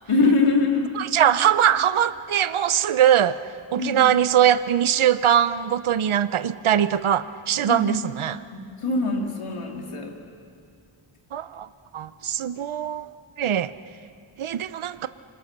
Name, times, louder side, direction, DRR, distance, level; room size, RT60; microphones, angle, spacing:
voice 1, 0.1-0.9 3.8-4.0 7.7-8.0 8.5-10.2, left 3 dB, 85° left, 1 dB, 2.9 m, -23 dB
voice 2, 1.0-3.4 3.7-8.4 11.3-11.7 11.9-13.7 14.4-15.1, right 10 dB, 75° right, 13 dB, 0.7 m, -21 dB
29.0 x 26.5 x 6.7 m, 2.4 s
wide cardioid pair, 100°, 50 cm